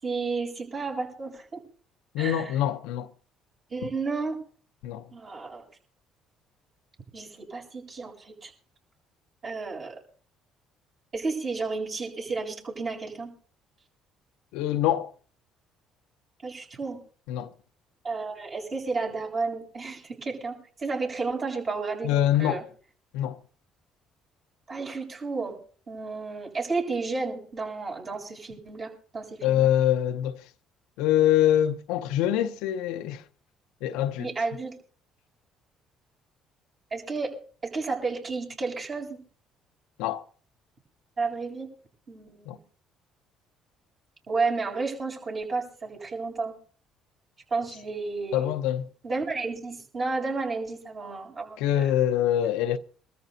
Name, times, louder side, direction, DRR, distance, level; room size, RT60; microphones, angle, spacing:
voice 1, 0.0-1.6 2.2-2.5 3.7-4.4 5.1-5.6 7.1-8.5 9.4-10.0 11.1-13.3 16.4-17.0 18.0-22.6 24.7-25.6 25.9-29.7 34.2-34.8 36.9-39.2 41.2-41.7 42.1-42.6 44.3-46.5 47.5-48.5 49.0-51.9, right 4 dB, 45° right, 7.9 m, -32 dB
voice 2, 2.1-3.1 4.8-5.0 14.5-15.1 17.3-17.5 22.0-22.6 23.1-23.4 29.4-30.4 31.0-33.2 33.8-34.3 40.0-40.2 42.5-42.6 48.3-48.9 51.6-52.8, left 11 dB, 80° left, 0.8 m, -24 dB
25.5 x 13.5 x 2.8 m
supercardioid pair, 65°, 0 cm